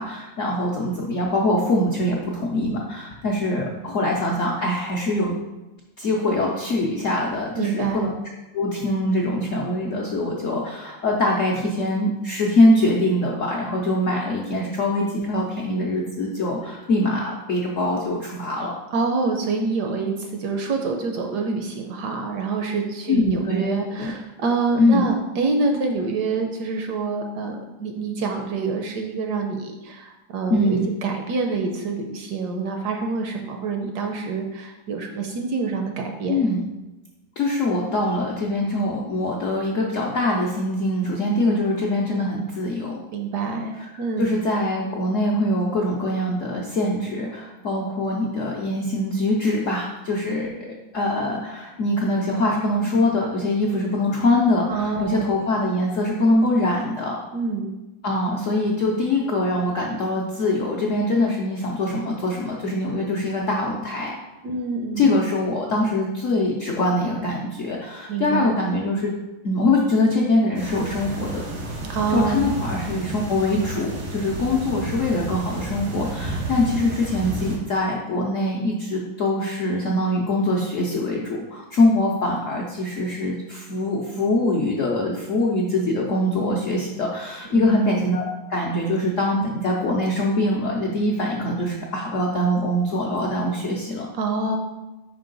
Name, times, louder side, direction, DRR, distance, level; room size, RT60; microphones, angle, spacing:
voice 1, 0.0-5.4 6.0-8.1 8.5-18.7 23.1-23.6 24.0-24.1 24.8-25.1 30.5-30.9 36.3-36.6 37.4-43.0 43.8-50.6 50.9-57.2 58.0-64.1 65.0-69.1 69.4-71.4 72.1-88.2 88.5-94.1, left 1 dB, 70° left, -2 dB, 0.7 m, -23 dB
voice 2, 7.6-8.1 18.9-36.4 43.1-44.3 54.7-55.3 57.3-57.7 64.4-65.1 68.1-68.5 71.9-72.5 87.5-87.7 94.2-94.6, right 4 dB, 70° right, 3 dB, 1.0 m, -26 dB
sound 1, 70.5-77.6, right 2 dB, 90° right, 2.1 m, -31 dB
5.2 x 4.7 x 3.8 m, 1.1 s
omnidirectional pair, 2.1 m